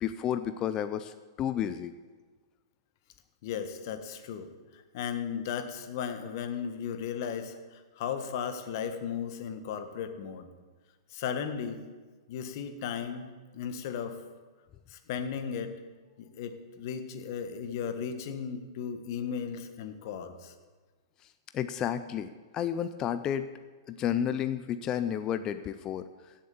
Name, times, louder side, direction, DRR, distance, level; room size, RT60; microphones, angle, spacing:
voice 1, 0.0-1.9 21.5-23.5 23.9-26.0, left 9 dB, 30° left, 11 dB, 0.6 m, -31 dB
voice 2, 3.4-10.5 11.1-11.8 12.3-13.3 13.5-14.2 14.9-15.7 16.2-20.5, left 7 dB, 55° left, 8 dB, 1.6 m, -36 dB
16.0 x 7.5 x 7.2 m, 1.3 s
hypercardioid pair, 125°, 2 cm